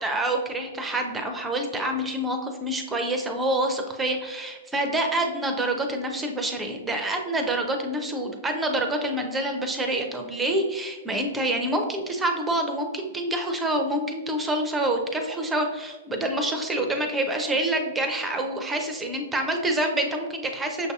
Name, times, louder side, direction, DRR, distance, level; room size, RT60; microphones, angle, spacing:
voice 1, 0.0-20.9, right 1 dB, 10° right, 4 dB, 0.6 m, -27 dB
6.2 x 2.7 x 2.3 m, 1.3 s
hypercardioid pair, 115°, 0 cm